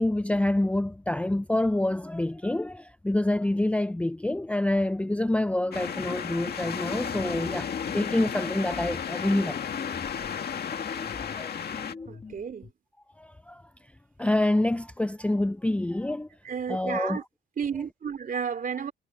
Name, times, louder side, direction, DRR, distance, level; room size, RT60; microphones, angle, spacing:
voice 1, 0.0-9.8 11.1-11.6 13.2-13.7 14.2-16.3 16.7-17.2, left 1 dB, 5° left, 0.6 m, -27 dB
sound 1, 5.7-11.9, left 7 dB, 55° left, 2.1 m, -33 dB
sound 2, 6.6-8.3 8.7-12.7, left 4 dB, 30° left, 1.9 m, -44 dB
voice 2, 12.1-12.7 16.4-17.2 17.6-18.9, right 7 dB, 45° right, 3.2 m, -32 dB
cardioid pair, 90°, 20 cm